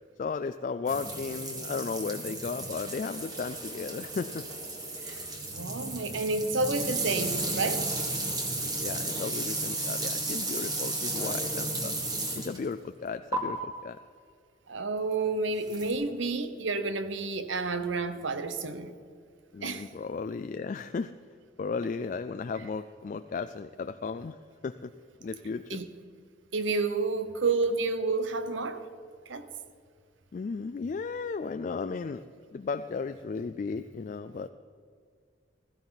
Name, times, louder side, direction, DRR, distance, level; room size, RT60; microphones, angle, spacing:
voice 1, 0.2-4.4 8.8-11.9 12.4-14.0 19.5-21.1 21.6-24.4 24.6-24.9 25.2-25.8 30.3-32.3 32.5-34.5, left 4 dB, 45° left, 9 dB, 0.3 m, -35 dB
sound 1, 0.9-12.7 13.3-13.4 15.6-15.9, right 2 dB, 20° right, 1.5 m, -34 dB
voice 2, 5.5-7.9 14.7-18.9 19.6-19.9 25.7-25.9 26.5-28.8 29.3-29.4, right 3 dB, 85° right, 10 dB, 0.9 m, -30 dB
16.0 x 14.0 x 4.0 m, 2.1 s
head